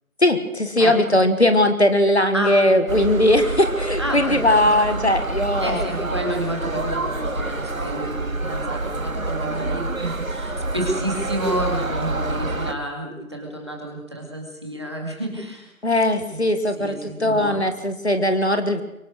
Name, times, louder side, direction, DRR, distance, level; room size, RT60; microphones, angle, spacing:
voice 1, 0.2-5.8 15.8-18.8, left 1 dB, 50° left, 9 dB, 1.8 m, -19 dB
voice 2, 2.3-2.8 4.0-5.2 5.6-15.7 16.3-16.4 16.8-17.6, right 1 dB, 20° right, 1 dB, 2.3 m, -30 dB
sound 1, 2.9-12.7, right 2 dB, 70° right, 2.0 m, -27 dB
24.0 x 18.5 x 6.4 m, 0.87 s
figure-of-eight pair, 180°, 43 cm